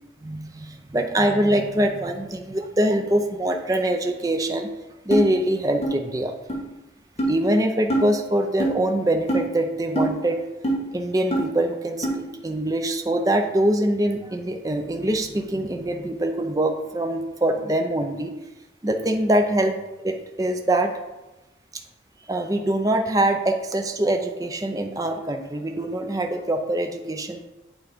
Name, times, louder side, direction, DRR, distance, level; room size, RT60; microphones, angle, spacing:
voice 1, 0.2-4.7 5.0-6.3 7.3-10.4 10.9-18.3 18.8-20.9 22.3-27.4, right 1 dB, 20° right, 4 dB, 0.5 m, -24 dB
sound 1, 5.1-5.2 5.8-5.9 6.5-6.6 7.2-7.3 7.9-8.0 8.6-8.7 9.3-9.4 9.9-10.1 10.6-10.8 11.3-11.4 12.0-12.1, right 1 dB, 35° left, 1.5 m, -22 dB
8.3 x 3.8 x 5.0 m, 1.0 s
head